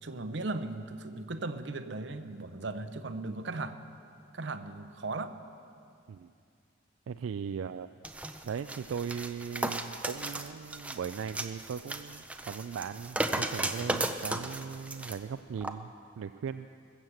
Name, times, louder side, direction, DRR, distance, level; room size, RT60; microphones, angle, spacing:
voice 1, 0.0-3.8 4.3-5.4, right 2 dB, 60° right, 10 dB, 0.7 m, -37 dB
voice 2, 7.1-7.9 8.4-16.7, right 7 dB, 80° right, 9 dB, 0.3 m, -38 dB
sound 1, 8.0-15.2 15.6-15.7, right 1 dB, 5° right, 0.5 m, -35 dB
21.0 x 7.4 x 7.8 m, 2.4 s
head